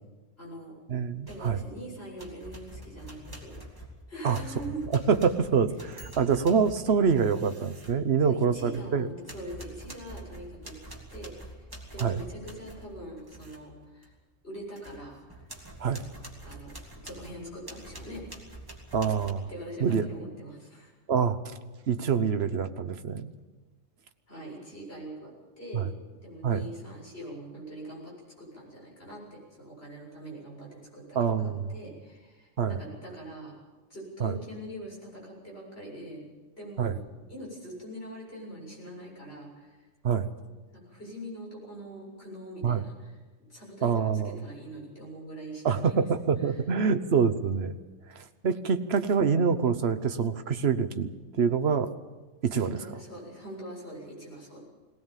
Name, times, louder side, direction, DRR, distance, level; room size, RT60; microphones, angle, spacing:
voice 1, 0.4-0.8 1.3-4.8 8.2-10.8 11.1-14.1 14.4-15.5 16.4-16.7 17.0-18.2 19.5-20.9 24.3-25.9 26.2-33.5 33.9-36.3 36.6-37.0 37.3-39.9 40.7-43.2 43.5-46.0 46.4-46.5 52.6-54.6, right 1 dB, 50° left, -3 dB, 7.8 m, -43 dB
voice 2, 0.9-1.6 4.2-4.4 4.9-9.1 12.0-12.2 15.8-16.0 18.9-19.5 19.8-20.1 21.1-21.4 21.9-23.3 25.7-25.9 26.4-26.6 31.1-31.7 32.6-32.8 34.2-34.3 36.8-37.0 40.0-40.3 42.6-42.9 43.8-44.4 45.6-47.7 48.1-51.9 52.4-52.8, right 6 dB, 55° right, 10 dB, 1.2 m, -26 dB
sound 1, 1.3-1.8 2.2-8.9 9.2-13.6 14.0-14.2 14.6-19.3, right 1 dB, 15° right, 2.9 m, -46 dB
19.5 x 19.0 x 7.3 m, 1.3 s
omnidirectional pair, 1.3 m